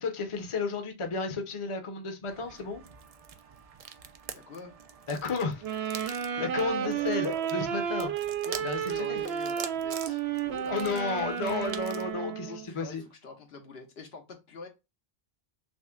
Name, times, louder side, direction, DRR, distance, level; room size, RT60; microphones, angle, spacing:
voice 1, 0.0-2.8 5.1-5.6 5.9-8.1 8.6-9.2 10.7-13.0, left 4 dB, 35° left, 0.7 m, -33 dB
sound 1, 2.3-12.1, right 7 dB, 50° right, 0.4 m, -45 dB
voice 2, 4.3-4.7 8.4-10.2 10.5-11.4 12.4-14.7, left 4 dB, 75° left, 1.2 m, -46 dB
sound 2, 5.6-12.7, right 9 dB, 80° right, 0.8 m, -32 dB
6.1 x 2.1 x 2.3 m
omnidirectional pair, 1.0 m